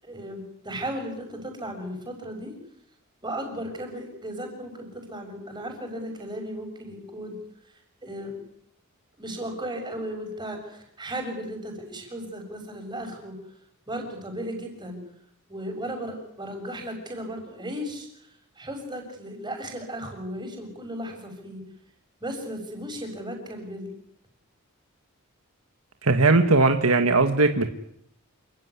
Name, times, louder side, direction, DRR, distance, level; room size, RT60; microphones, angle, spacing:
voice 1, 0.0-2.5 3.2-7.4 8.0-8.4 9.2-13.4 13.9-15.0 15.5-18.1 18.6-21.6 22.2-24.0, equal, 20° right, 2 dB, 7.0 m, -35 dB
voice 2, 26.0-27.7, right 3 dB, 70° right, 6 dB, 1.7 m, -19 dB
28.0 x 16.5 x 9.8 m, 0.73 s
head